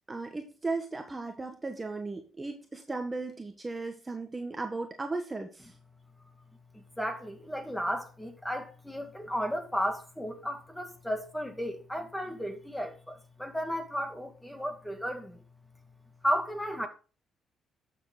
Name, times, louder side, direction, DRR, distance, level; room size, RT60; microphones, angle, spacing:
voice 1, 0.1-5.7, right 3 dB, 20° right, 1.5 m, -36 dB
voice 2, 6.7-15.4 16.2-16.9, equal, 5° left, 2.2 m, -34 dB
11.5 x 7.3 x 3.9 m
cardioid pair, 90°, 0 cm